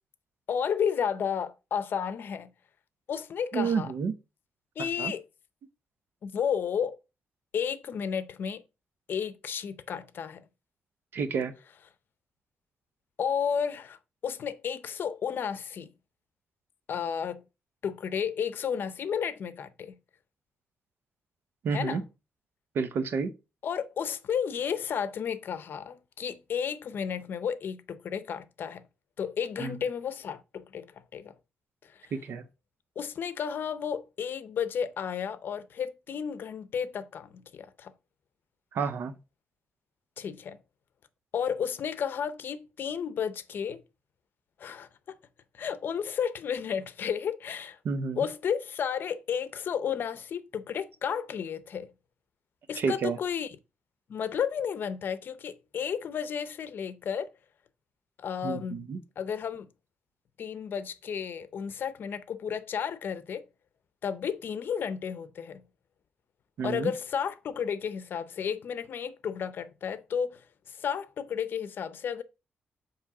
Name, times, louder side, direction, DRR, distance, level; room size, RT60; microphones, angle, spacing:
voice 1, 0.5-2.5 3.1-3.9 4.8-5.3 6.2-7.0 7.5-8.6 9.1-10.4 13.2-14.0 14.2-15.9 16.9-17.4 17.8-20.0 21.7-22.0 23.6-28.9 29.2-31.3 31.8-32.1 33.0-37.9 40.2-40.6 41.3-43.8 44.6-45.2 45.5-47.8 48.2-51.9 52.7-53.6 54.1-57.3 58.2-58.9 59.2-59.7 60.4-63.5 64.0-65.6 66.6-72.2, left 7 dB, 60° left, 0.6 m, -32 dB
voice 2, 3.5-4.1 4.8-5.1 11.1-11.5 21.6-22.0 22.7-23.3 29.6-29.7 32.1-32.4 38.7-39.1 47.8-48.2 52.8-53.2 58.4-59.0 66.6-66.9, right 5 dB, 70° right, 0.7 m, -30 dB
7.4 x 3.1 x 4.8 m
cardioid pair, 120°, 4 cm